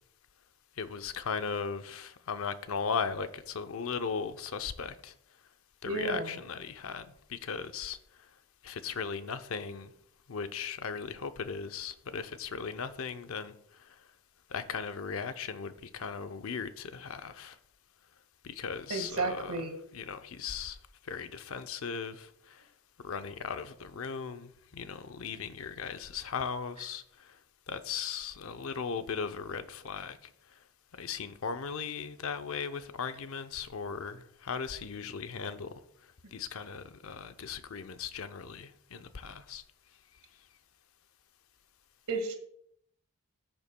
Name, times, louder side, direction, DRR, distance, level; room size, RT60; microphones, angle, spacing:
voice 1, 0.8-5.1 5.8-8.0 8.6-9.9 10.3-13.5 13.8-14.0 14.5-17.6 18.4-20.8 21.0-22.7 23.0-27.4 27.7-30.3 31.0-35.7 36.3-39.6, left 6 dB, 70° left, 0.6 m, -37 dB
voice 2, 5.8-6.3 18.9-19.7 42.1-42.3, right 3 dB, 85° right, 1.7 m, -32 dB
13.5 x 7.1 x 2.2 m
head